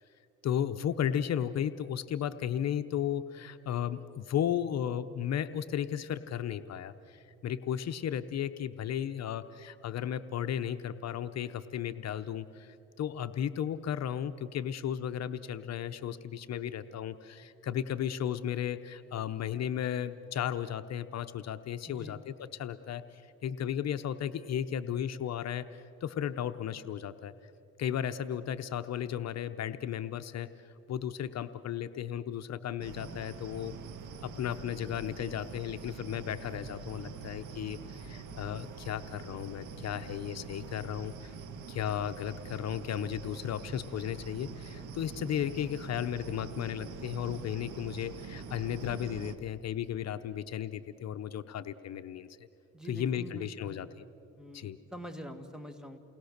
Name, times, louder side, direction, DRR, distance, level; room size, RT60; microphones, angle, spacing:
voice 1, 0.4-27.3 27.8-33.7 34.2-41.4 41.7-52.5 52.8-54.1 54.5-54.8, left 9 dB, 60° left, 10 dB, 0.7 m, -35 dB
voice 2, 21.9-22.2 52.7-53.8 54.4-56.0, right 1 dB, ahead, 6 dB, 1.9 m, -45 dB
sound 1, 32.8-49.4, right 5 dB, 80° right, 1.6 m, -44 dB
29.0 x 20.0 x 6.6 m, 2.8 s
cardioid pair, 90°, 30 cm